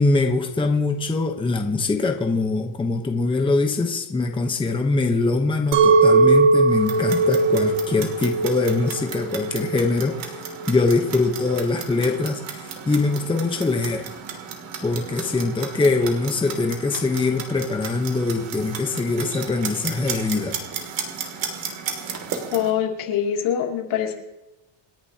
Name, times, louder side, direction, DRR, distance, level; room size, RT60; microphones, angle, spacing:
voice 1, 0.0-10.4 10.7-14.1 14.8-20.5, left 3 dB, 10° left, 3 dB, 0.9 m, -23 dB
Chink clink, 5.7-10.9, right 3 dB, 90° right, 1.4 m, -20 dB
Clock, 6.7-22.7, right 6 dB, 60° right, 2.8 m, -35 dB
voice 2, 22.5-24.1, left 9 dB, 75° left, 1 dB, 2.9 m, -24 dB
28.0 x 10.5 x 2.9 m, 0.94 s
cardioid pair, 150°, 49 cm